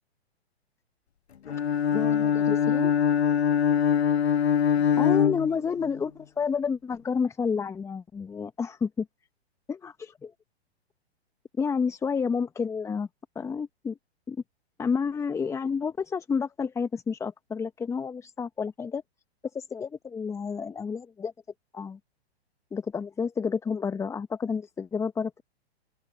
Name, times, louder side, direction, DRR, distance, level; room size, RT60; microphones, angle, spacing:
Bowed string instrument, 1.5-6.1, left 8 dB, 70° left, 1.6 m, -23 dB
voice 1, 1.9-2.9 5.0-9.1 9.7-10.3 11.6-13.1 13.3-14.0 14.3-14.4 14.8-19.0 19.5-21.3 21.7-22.0 22.7-25.4, left 6 dB, 10° left, 1.0 m, -30 dB
open air
hypercardioid pair, 125°, 33 cm